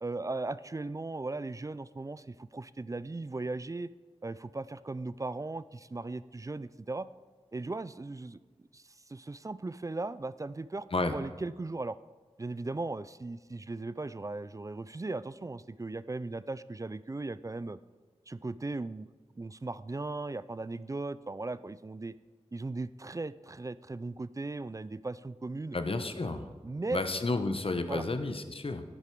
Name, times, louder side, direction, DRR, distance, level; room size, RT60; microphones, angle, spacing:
voice 1, 0.0-3.9 4.2-7.1 7.5-8.4 8.7-12.0 12.4-17.8 18.3-19.1 19.4-22.1 22.5-25.8 26.2-27.0 27.9-28.0, right 2 dB, 30° right, 16 dB, 0.3 m, -37 dB
voice 2, 25.7-26.4 26.9-28.8, left 3 dB, 50° left, 8 dB, 0.9 m, -31 dB
10.0 x 9.8 x 4.6 m, 1.4 s
wide cardioid pair, 45°, 12 cm